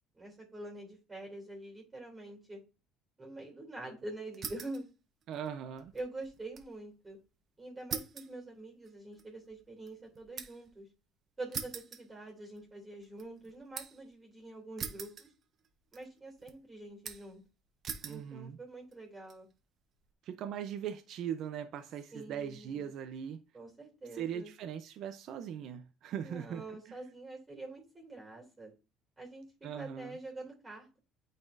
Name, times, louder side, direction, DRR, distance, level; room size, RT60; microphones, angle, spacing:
voice 1, 0.1-2.6 3.2-4.9 5.9-7.2 7.6-10.9 11.4-15.3 15.9-17.4 18.1-19.5 22.1-22.9 23.5-24.5 26.2-28.7 29.2-29.4 29.7-31.0, right 2 dB, 20° right, 2.7 m, -46 dB
sound 1, 4.3-4.9 5.2-6.7 7.0-7.1 7.9-10.7 11.5-12.7 13.0-14.1 14.8-15.7 15.9-16.5 17.0-17.4 17.8-18.2 18.9-19.3, right 6 dB, 45° right, 1.0 m, -43 dB
voice 2, 5.3-5.9 18.0-18.6 20.2-23.4 24.1-27.0 29.6-30.2, right 9 dB, 65° right, 0.5 m, -40 dB
8.9 x 4.1 x 2.6 m
cardioid pair, 100°, 0 cm